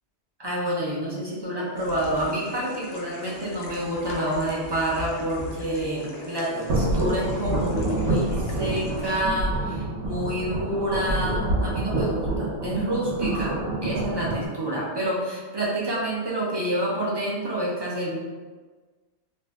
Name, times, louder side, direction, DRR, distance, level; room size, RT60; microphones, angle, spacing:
voice 1, 0.4-18.2, right 1 dB, 35° right, -5 dB, 0.4 m, -28 dB
sound 1, 1.8-9.2, left 2 dB, 70° left, 0.8 m, -41 dB
sound 2, 6.7-14.5, right 2 dB, 75° right, 1.0 m, -27 dB
2.6 x 2.0 x 3.3 m, 1.3 s
omnidirectional pair, 1.2 m